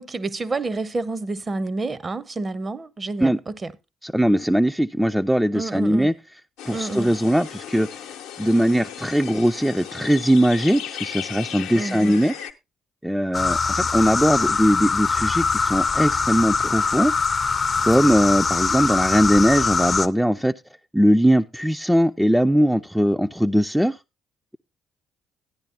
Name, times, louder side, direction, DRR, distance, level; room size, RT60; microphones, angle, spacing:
voice 1, 0.0-3.7 5.5-6.1 6.7-7.2 11.7-12.2, right 3 dB, 30° right, 0.8 m, -29 dB
voice 2, 4.0-6.1 6.7-7.9 8.4-12.3 13.0-17.1 17.8-20.5 20.9-24.0, equal, 5° right, 0.5 m, -20 dB
sound 1, 6.6-12.5, left 10 dB, 70° left, 0.8 m, -36 dB
sound 2, 13.3-20.1, left 4 dB, 35° left, 0.6 m, -22 dB
13.0 x 10.5 x 2.7 m
figure-of-eight pair, 45°, 0 cm